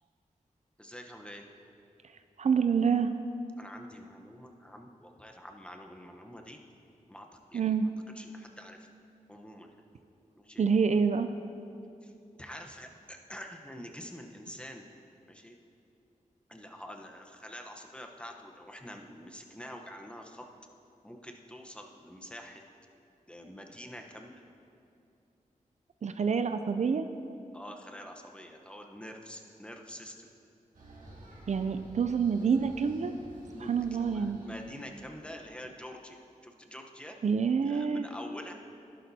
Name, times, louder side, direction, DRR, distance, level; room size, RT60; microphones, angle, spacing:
voice 1, 0.8-1.5 3.6-6.6 7.1-7.7 8.1-8.9 9.3-9.8 10.4-10.6 12.0-12.1 12.4-14.9 15.3-15.6 16.5-20.5 21.0-22.6 23.3-24.4 27.5-30.3 33.5-37.2 37.6-38.5, equal, 10° left, 2 dB, 0.9 m, -46 dB
voice 2, 2.4-3.1 7.5-7.9 10.6-11.3 26.0-27.1 31.5-33.1 33.6-34.4 37.2-38.0, right 6 dB, 60° right, 9 dB, 0.4 m, -27 dB
sound 1, 30.7-35.7, right 1 dB, 85° right, 1.8 m, -52 dB
11.5 x 11.5 x 2.8 m, 2.6 s
cardioid pair, 65°, 14 cm